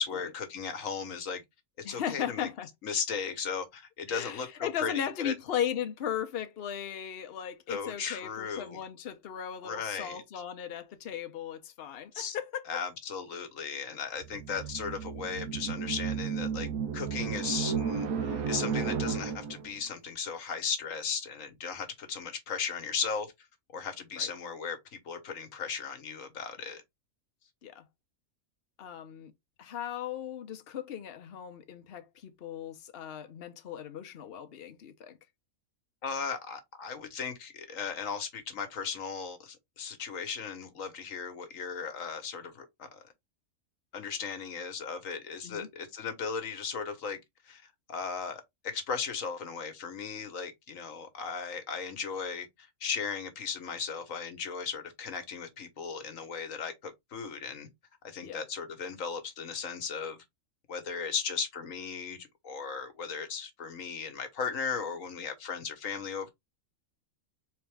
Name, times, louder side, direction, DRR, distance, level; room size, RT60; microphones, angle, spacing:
voice 1, 0.0-1.4 1.8-2.5 2.8-5.3 7.7-8.8 9.6-10.4 12.1-12.4 12.7-23.3 23.7-26.8 36.0-43.1 43.9-47.2 47.4-57.7 58.0-60.2 60.7-66.3, left 6 dB, 70° left, 1.5 m, -36 dB
voice 2, 1.8-2.7 4.1-12.8 24.1-24.3 27.6-27.8 28.8-29.3 29.6-35.2 45.4-45.7 58.2-58.4, left 9 dB, 50° left, 0.9 m, -37 dB
sound 1, 14.2-19.7, right 6 dB, 85° right, 1.3 m, -33 dB
4.2 x 3.5 x 3.4 m
omnidirectional pair, 1.5 m